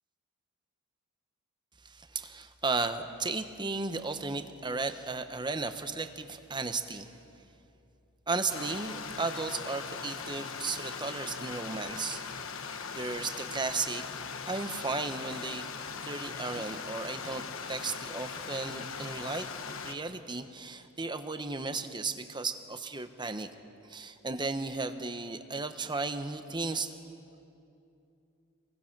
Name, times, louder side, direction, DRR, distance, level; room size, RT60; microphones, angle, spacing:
voice 1, 1.8-7.1 8.3-12.2 12.9-14.0 14.5-15.7 16.0-19.5 19.8-23.5 23.9-26.9, right 3 dB, 20° right, 9 dB, 1.0 m, -35 dB
Stream, 8.5-20.0, left 5 dB, 65° left, 1.2 m, -40 dB
27.5 x 20.5 x 6.1 m, 2.7 s
head